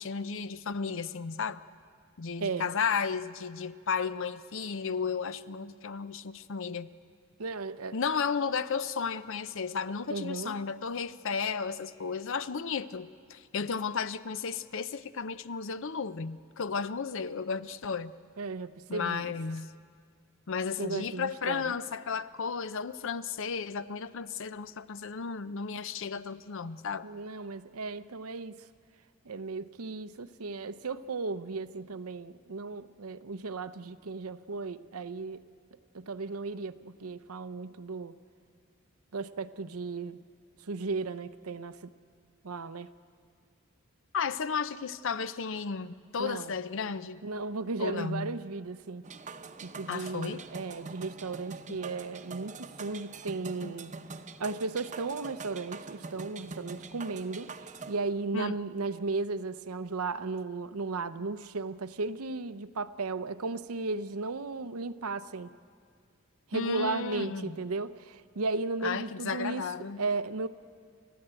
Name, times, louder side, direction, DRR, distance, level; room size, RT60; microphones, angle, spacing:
voice 1, 0.0-1.6 2.2-6.9 7.9-18.1 18.9-19.7 20.5-27.1 44.1-47.2 47.8-48.4 49.9-50.4 53.6-53.7 58.3-58.6 66.5-67.6 68.8-70.0, left 5 dB, 60° left, 14 dB, 0.6 m, -34 dB
voice 2, 2.4-2.7 7.4-8.0 10.1-10.6 18.4-19.3 20.8-21.7 27.0-28.7 29.2-35.4 35.9-38.2 39.1-40.2 40.6-41.9 42.4-42.9 46.2-46.5 47.2-53.9 54.4-65.5 66.5-69.6 70.0-70.5, right 3 dB, 85° right, 12 dB, 0.8 m, -35 dB
sound 1, 49.0-58.0, right 4 dB, 35° right, 0.8 m, -44 dB
29.5 x 14.0 x 8.9 m, 2.2 s
head